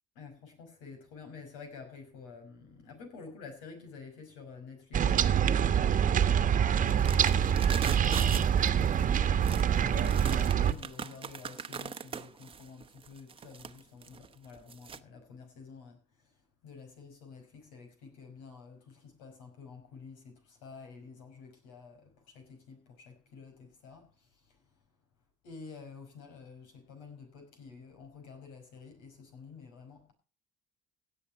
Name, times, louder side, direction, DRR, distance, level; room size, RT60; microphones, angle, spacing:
voice 1, 0.2-24.6 25.4-30.1, left 5 dB, 90° left, 5.6 m, -50 dB
sound 1, 4.9-10.7, right 8 dB, 45° right, 1.3 m, -25 dB
sound 2, 6.9-15.0, right 6 dB, 30° right, 1.0 m, -41 dB
17.0 x 7.2 x 5.7 m
supercardioid pair, 85°, 18 cm